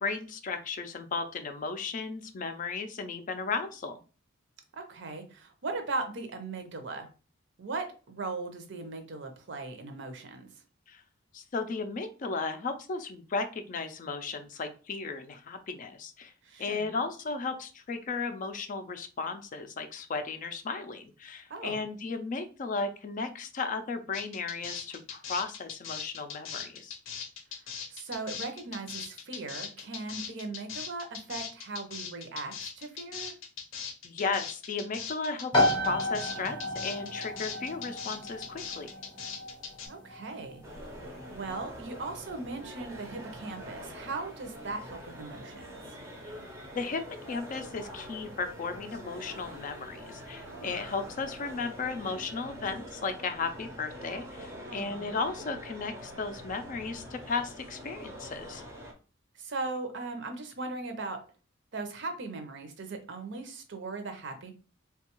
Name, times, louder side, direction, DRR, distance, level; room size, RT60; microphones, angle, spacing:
voice 1, 0.0-4.0 10.9-11.0 11.3-16.3 16.6-27.0 34.0-36.6 36.8-38.9 46.2-46.4 46.7-47.0 47.3-58.6, left 4 dB, 40° left, 8 dB, 0.4 m, -35 dB
voice 2, 4.7-7.1 7.6-10.5 16.4-17.0 21.5-21.8 27.9-33.3 39.9-40.6 41.0-45.8 50.5-50.8 54.7-55.1 59.4-61.2 61.7-64.5, right 3 dB, 60° right, 6 dB, 0.6 m, -38 dB
sound 1, 24.1-39.9, left 7 dB, 80° left, 0.6 m, -40 dB
sound 2, 35.5-50.0, left 1 dB, 25° left, 0.7 m, -35 dB
sound 3, 40.6-58.9, equal, 15° right, 0.5 m, -45 dB
3.4 x 2.3 x 2.9 m, 0.36 s
head